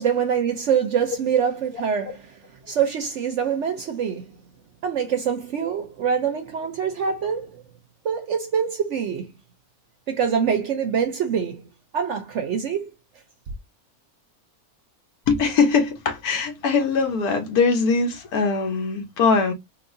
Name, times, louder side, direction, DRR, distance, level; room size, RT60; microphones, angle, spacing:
voice 1, 0.0-2.2 2.7-4.3 4.8-7.6 8.0-9.3 10.1-12.9, right 7 dB, 65° right, 0.8 m, -25 dB
voice 2, 15.3-19.5, left 4 dB, 80° left, 1.3 m, -21 dB
3.9 x 2.5 x 2.6 m
omnidirectional pair, 1.6 m